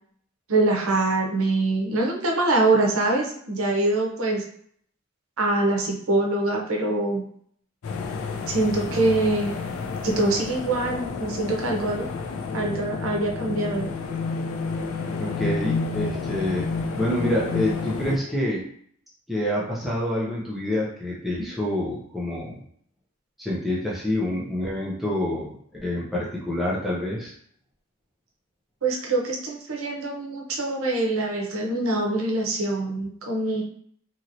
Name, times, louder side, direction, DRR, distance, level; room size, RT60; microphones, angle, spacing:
voice 1, 0.5-4.4 5.4-7.2 8.5-9.5 10.0-12.0 12.5-13.9 28.8-33.6, right 2 dB, 75° right, 0 dB, 0.7 m, -24 dB
sound 1, 7.8-18.2, left 4 dB, 75° left, 0.4 m, -30 dB
voice 2, 15.2-16.6 17.0-18.7 19.3-22.6 23.4-27.3, left 1 dB, ahead, -6 dB, 0.5 m, -27 dB
3.0 x 2.8 x 2.6 m, 0.64 s
head